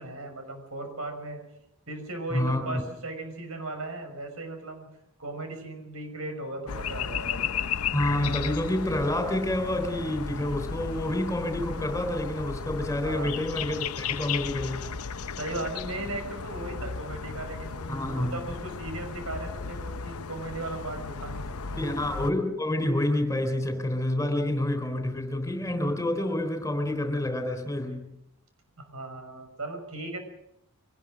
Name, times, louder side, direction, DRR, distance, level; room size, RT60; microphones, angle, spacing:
voice 1, 0.0-1.4 1.9-4.9 5.2-7.5 13.0-13.4 15.4-21.9 28.8-30.2, right 2 dB, 75° right, 6 dB, 6.2 m, -37 dB
voice 2, 2.3-2.8 7.9-15.0 17.9-18.3 21.8-28.1, left 1 dB, 15° left, 6 dB, 3.8 m, -28 dB
sound 1, 6.7-22.3, left 6 dB, 85° left, 0.8 m, -35 dB
24.0 x 19.5 x 6.4 m, 0.81 s
head